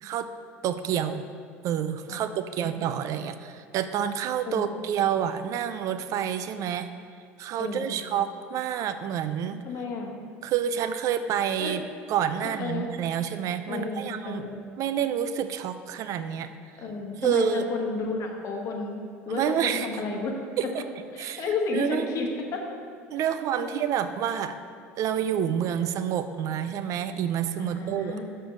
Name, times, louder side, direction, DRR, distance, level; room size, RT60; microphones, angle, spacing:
voice 1, 0.6-1.2 1.6-6.9 7.4-9.6 10.4-11.8 12.1-14.4 14.8-16.5 17.2-17.6 19.3-19.9 20.6-20.8 21.2-21.4 21.7-22.1 23.1-24.6 25.0-28.2, right 9 dB, 55° right, 11 dB, 0.4 m, -28 dB
voice 2, 2.1-2.8 4.5-4.8 7.6-7.9 9.6-10.1 11.6-11.8 12.6-12.9 13.7-14.6 16.8-19.0 19.3-20.3 21.1-22.6 23.1-23.8 27.6-28.2, left 4 dB, 50° left, 2 dB, 1.2 m, -32 dB
6.7 x 4.4 x 6.3 m, 2.2 s
hypercardioid pair, 75°, 7 cm